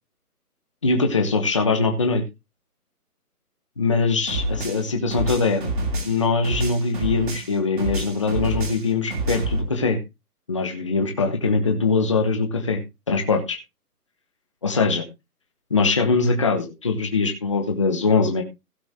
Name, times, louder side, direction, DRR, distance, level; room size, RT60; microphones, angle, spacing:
voice 1, 0.8-2.2 3.8-5.7 6.0-10.0 10.5-12.8 13.1-13.6 14.6-15.0 15.7-18.4, left 4 dB, 20° left, 4 dB, 1.0 m, -22 dB
sound 1, 4.3-7.5 7.8-9.6, right 1 dB, 30° right, 2.8 m, -27 dB
16.0 x 7.0 x 3.5 m, 0.25 s
hypercardioid pair, 175°, 47 cm